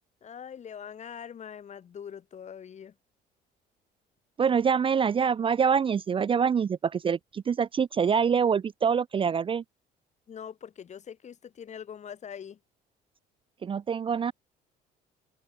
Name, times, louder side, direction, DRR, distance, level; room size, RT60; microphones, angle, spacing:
voice 1, 0.2-2.9 10.3-12.6, left 8 dB, 45° left, 2.7 m, -43 dB
voice 2, 4.4-9.6 13.6-14.3, right 6 dB, 30° right, 0.6 m, -25 dB
cardioid pair, 110°, 17 cm